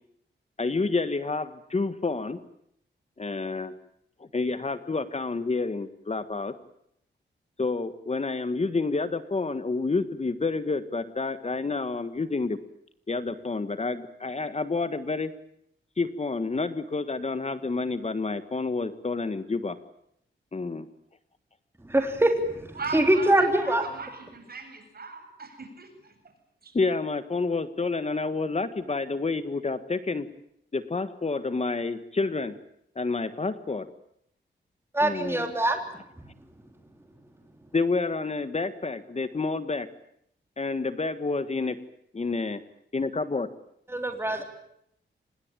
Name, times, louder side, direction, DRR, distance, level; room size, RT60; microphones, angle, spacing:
voice 1, 0.6-2.4 3.2-3.7 4.3-6.5 7.6-12.6 13.1-15.3 16.0-19.8 20.5-20.9 26.7-30.3 30.7-32.6 32.9-33.9 35.0-35.6 37.7-39.9 40.6-41.8 42.1-42.6 42.9-43.5, left 3 dB, 35° left, 13 dB, 1.5 m, -29 dB
voice 2, 21.9-23.8 34.9-35.8 43.9-44.4, right 1 dB, 10° right, 5 dB, 3.5 m, -23 dB
voice 3, 22.7-26.1 26.6-26.8, right 4 dB, 50° right, 6 dB, 7.9 m, -39 dB
26.0 x 21.0 x 8.9 m, 0.74 s
wide cardioid pair, 95°, 20 cm